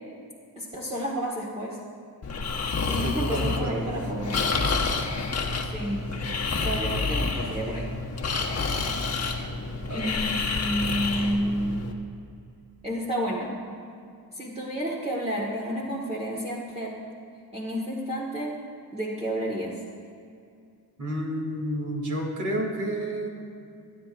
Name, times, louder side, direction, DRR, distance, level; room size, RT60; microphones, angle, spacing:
voice 1, 0.5-1.8 2.9-4.4 5.6-6.1 6.6-7.9 9.9-11.8 12.8-13.5 14.3-16.9 17.5-18.5 18.9-19.7, equal, 15° right, -7 dB, 1.7 m, -30 dB
Breathing, 2.2-11.9, left 4 dB, 40° left, 1.3 m, -29 dB
voice 2, 2.9-3.9 9.9-10.1 21.0-23.3, right 1 dB, 50° right, -2 dB, 2.8 m, -30 dB
25.5 x 9.5 x 2.6 m, 2.5 s
cardioid pair, 90°, 38 cm